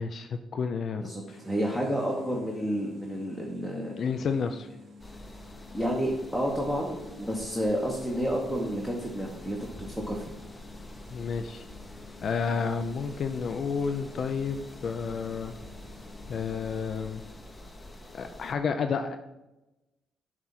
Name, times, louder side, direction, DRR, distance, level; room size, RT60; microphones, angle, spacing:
voice 1, 0.0-1.0 1.3-1.4 4.0-4.7 11.1-11.6 12.2-14.6 14.8-15.5 16.3-17.2 18.1-19.2, left 5 dB, 55° left, 6 dB, 0.3 m, -30 dB
voice 2, 0.9-3.9 5.7-10.2, equal, ahead, -2 dB, 1.0 m, -30 dB
sound 1, 1.3-17.3, left 4 dB, 60° right, 1.0 m, -51 dB
sound 2, 5.0-18.5, left 1 dB, 20° left, 0.7 m, -47 dB
7.2 x 2.5 x 5.6 m, 1.0 s
cardioid pair, 90°, 0 cm